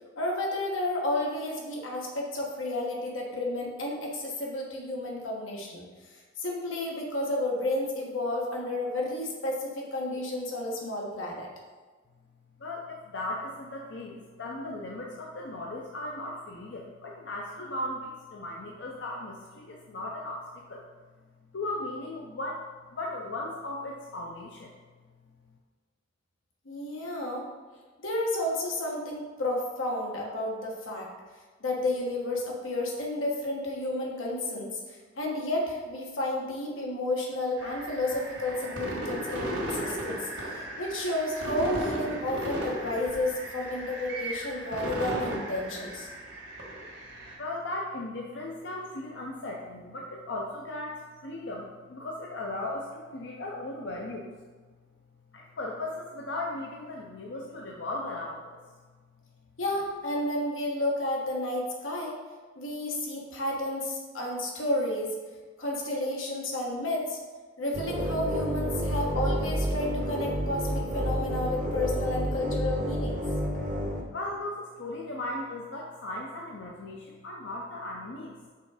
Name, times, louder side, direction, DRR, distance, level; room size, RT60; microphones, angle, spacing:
voice 1, 0.2-5.9 6.1-11.5 26.6-27.5 28.0-31.1 31.6-46.1 59.6-62.2 62.5-65.2 65.6-67.2 67.6-73.2, left 1 dB, 90° left, -2 dB, 1.3 m, -31 dB
voice 2, 12.6-20.8 21.5-24.7 47.4-54.3 55.3-58.6 74.1-78.4, left 2 dB, 60° left, -1 dB, 0.6 m, -37 dB
sound 1, 37.6-47.4, right 1 dB, 75° right, 1.6 m, -36 dB
sound 2, 67.7-74.0, equal, 40° right, 0.8 m, -30 dB
5.8 x 3.6 x 4.8 m, 1.4 s
head